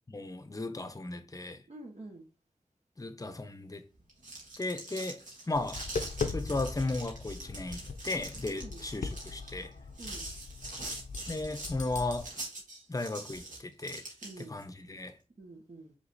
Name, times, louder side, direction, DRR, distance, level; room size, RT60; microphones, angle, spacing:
voice 1, 0.1-1.6 3.0-3.9 4.6-5.9 6.3-9.7 11.3-12.3 12.9-14.0 14.4-15.2, left 2 dB, 25° left, 0.7 m, -36 dB
voice 2, 1.7-2.3 8.5-8.8 10.0-10.3 14.2-14.6 15.4-16.0, right 2 dB, 60° right, 1.3 m, -47 dB
sound 1, 4.0-14.6, right 2 dB, 90° right, 1.4 m, -44 dB
Tap, 5.5-12.2, left 4 dB, 75° left, 0.6 m, -40 dB
4.9 x 3.4 x 2.6 m
cardioid pair, 45°, 13 cm